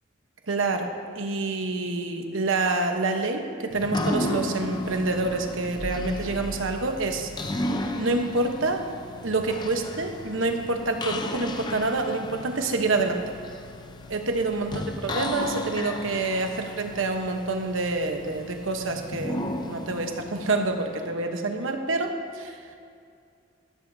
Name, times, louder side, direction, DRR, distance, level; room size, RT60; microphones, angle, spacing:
voice 1, 0.5-7.3 8.0-8.8 9.2-13.2 14.1-22.6, right 3 dB, 80° right, 4 dB, 1.0 m, -27 dB
sound 1, 3.7-21.5, left 1 dB, 20° left, 0.6 m, -34 dB
14.0 x 13.0 x 2.7 m, 2.3 s
head